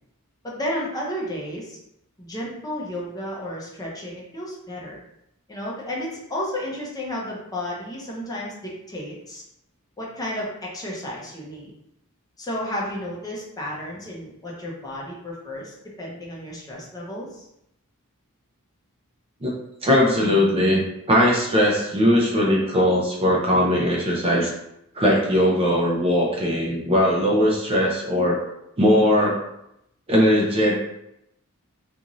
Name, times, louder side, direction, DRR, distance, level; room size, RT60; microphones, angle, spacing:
voice 1, 0.4-1.8 2.2-5.0 5.5-9.4 10.0-11.7 12.4-17.5, left 1 dB, 15° left, -4 dB, 0.6 m, -32 dB
voice 2, 19.8-24.5 24.9-28.4 28.8-29.4 30.1-30.7, equal, 25° right, -3 dB, 0.5 m, -19 dB
2.5 x 2.5 x 3.0 m, 0.80 s
head